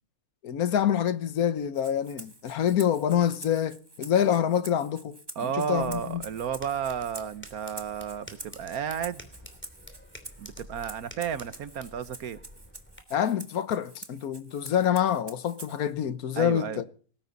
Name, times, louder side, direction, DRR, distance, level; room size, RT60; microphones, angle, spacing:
voice 1, 0.4-5.2 5.4-6.2 13.1-16.8, left 9 dB, 85° left, 1.5 m, -26 dB
Rattle (instrument), 1.7-15.9, right 2 dB, 20° right, 1.2 m, -47 dB
voice 2, 5.3-9.3 10.4-12.4 16.3-16.8, right 8 dB, 85° right, 1.6 m, -32 dB
sound 1, 5.8-13.0, equal, 5° left, 2.9 m, -49 dB
19.0 x 16.0 x 4.0 m
omnidirectional pair, 1.5 m